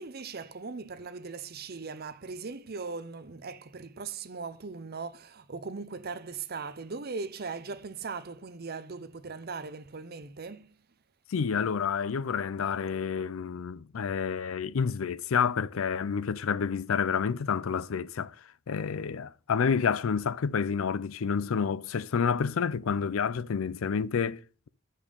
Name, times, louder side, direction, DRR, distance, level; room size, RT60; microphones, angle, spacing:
voice 1, 0.0-10.8, right 4 dB, 50° right, 0.7 m, -39 dB
voice 2, 11.3-18.3 18.7-24.7, left 6 dB, 80° left, 0.5 m, -29 dB
8.4 x 5.5 x 5.3 m
head